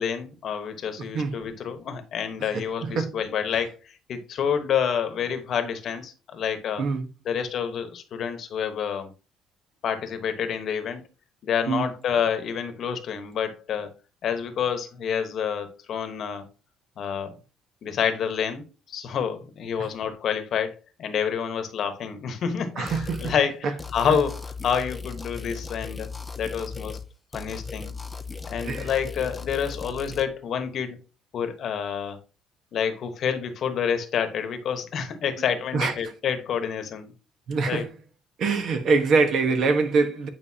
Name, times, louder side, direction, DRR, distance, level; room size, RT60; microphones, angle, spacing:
voice 1, 0.0-6.8 7.2-9.1 9.8-11.0 11.4-13.9 14.2-16.5 17.0-17.4 17.8-23.6 23.9-26.1 26.4-27.0 27.3-27.9 28.4-31.0 31.3-32.2 32.7-37.1 37.7-37.8, left 7 dB, 50° left, 1.1 m, -28 dB
voice 2, 2.5-3.2 6.8-7.1 11.7-11.9 19.8-19.9 22.8-23.3 23.6-23.7 24.1-24.2 28.6-28.9 35.7-35.9 37.5-37.9 38.4-40.3, right 4 dB, 50° right, 1.1 m, -24 dB
sound 1, 22.9-23.4 23.8-27.1 27.3-30.3, left 4 dB, 10° left, 0.5 m, -37 dB
9.3 x 5.2 x 2.8 m
cardioid pair, 150°, 0 cm